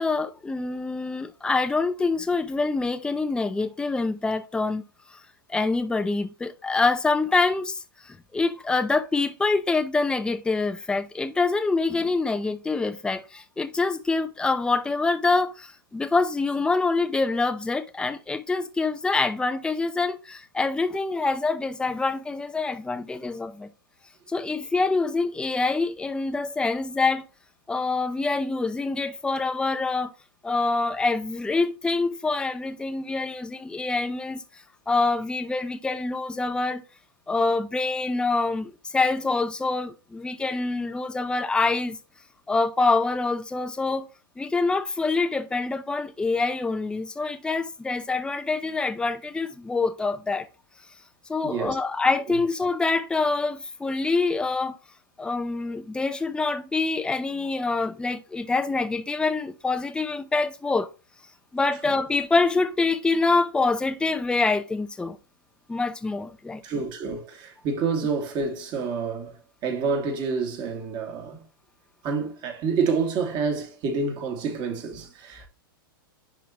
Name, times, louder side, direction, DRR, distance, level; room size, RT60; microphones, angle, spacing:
voice 1, 0.0-4.8 5.1-5.2 5.5-23.7 24.3-27.3 27.7-30.1 30.4-34.4 34.9-36.8 37.3-42.0 42.5-44.1 44.4-50.5 51.3-54.8 55.2-60.9 61.5-65.2 65.7-66.6, left 3 dB, 5° left, 0.7 m, -25 dB
voice 2, 51.4-51.8 52.3-52.4 61.9-62.0 66.6-71.4 72.0-75.5, right 5 dB, 40° right, 2.3 m, -28 dB
10.5 x 3.8 x 2.9 m
hypercardioid pair, 110°, 12 cm